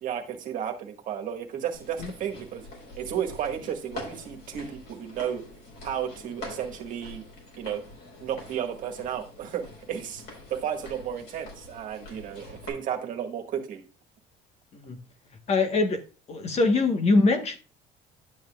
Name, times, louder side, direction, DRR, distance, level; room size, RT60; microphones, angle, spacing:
voice 1, 0.0-2.7 3.0-5.4 5.8-7.2 7.6-7.8 8.2-10.2 10.5-13.8, right 9 dB, 55° right, 1.7 m, -33 dB
sound 1, 1.7-12.7, left 2 dB, 70° left, 4.6 m, -45 dB
voice 2, 15.5-16.0 16.3-17.6, left 3 dB, 40° left, 1.3 m, -23 dB
11.0 x 7.4 x 2.4 m
cardioid pair, 110°, 17 cm